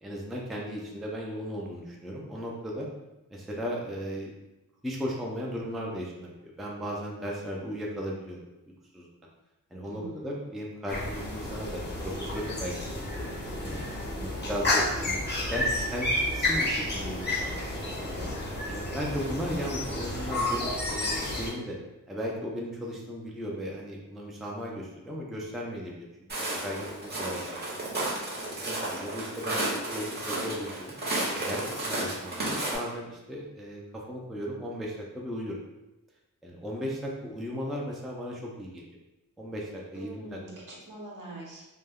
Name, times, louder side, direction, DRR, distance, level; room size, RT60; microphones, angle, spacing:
voice 1, 0.0-2.9 3.3-4.3 4.8-8.4 8.9-9.1 9.7-13.8 14.2-18.3 18.7-21.8 22.1-26.1 26.4-28.1 28.6-30.9 31.5-35.6 36.4-38.8 39.4-40.4, equal, ahead, -3 dB, 0.3 m, -36 dB
voice 2, 9.8-10.5 39.9-41.7, right 2 dB, 75° right, -5 dB, 0.9 m, -43 dB
sound 1, 10.9-21.5, left 1 dB, 30° left, 0.6 m, -31 dB
Walk footsteps, 26.3-32.8, right 1 dB, 30° right, 0.7 m, -32 dB
2.2 x 2.1 x 3.4 m, 0.99 s
wide cardioid pair, 120°, 33 cm